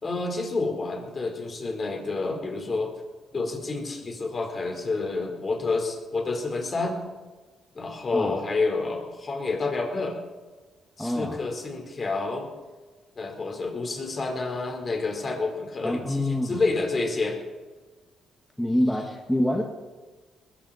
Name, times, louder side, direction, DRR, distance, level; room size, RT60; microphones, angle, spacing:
voice 1, 0.0-2.9 3.3-7.0 7.7-10.2 11.0-12.5 13.2-17.4, left 3 dB, 35° left, 2 dB, 4.5 m, -29 dB
voice 2, 11.0-11.4 15.8-16.6 18.6-19.6, left 1 dB, 5° left, 0 dB, 2.0 m, -26 dB
21.0 x 14.5 x 4.4 m, 1.3 s
cardioid pair, 90°, 0 cm